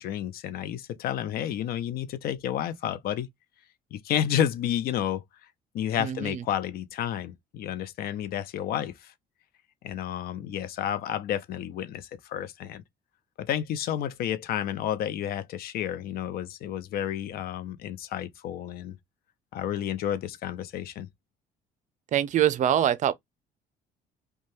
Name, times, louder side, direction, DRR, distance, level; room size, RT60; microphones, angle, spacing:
voice 1, 0.0-3.3 3.9-5.2 5.7-9.1 9.8-12.8 13.4-19.0 19.5-21.1, left 10 dB, 65° left, 0.5 m, -31 dB
voice 2, 6.0-6.4 22.1-23.1, right 10 dB, 50° right, 0.5 m, -24 dB
2.7 x 2.2 x 3.1 m
cardioid pair, 110°, 17 cm